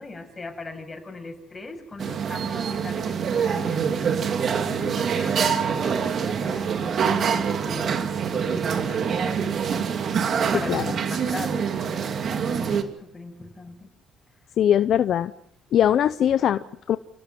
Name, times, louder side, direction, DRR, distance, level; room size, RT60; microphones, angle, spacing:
voice 1, 0.0-13.9, left 3 dB, 25° left, 5 dB, 7.1 m, -39 dB
sound 1, 2.0-12.8, right 7 dB, 60° right, 2.7 m, -25 dB
voice 2, 14.6-15.3 15.7-17.0, left 10 dB, 65° left, 12 dB, 0.7 m, -21 dB
29.0 x 17.5 x 6.1 m, 0.75 s
supercardioid pair, 70°, 0 cm